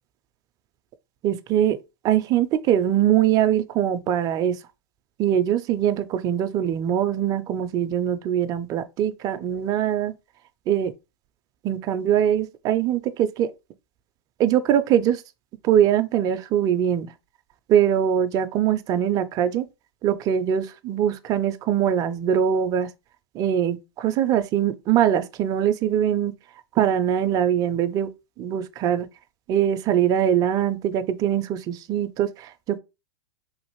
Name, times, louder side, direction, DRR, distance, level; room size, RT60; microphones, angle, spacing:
voice 1, 1.2-1.8 2.0-4.6 5.2-10.1 10.7-10.9 11.6-13.5 14.4-15.2 15.6-17.1 17.7-19.7 20.0-22.9 23.3-26.3 26.8-28.1 28.4-29.1 29.5-32.8, right 10 dB, 30° right, 0.3 m, -22 dB
3.1 x 2.5 x 2.9 m
hypercardioid pair, 110°, 13 cm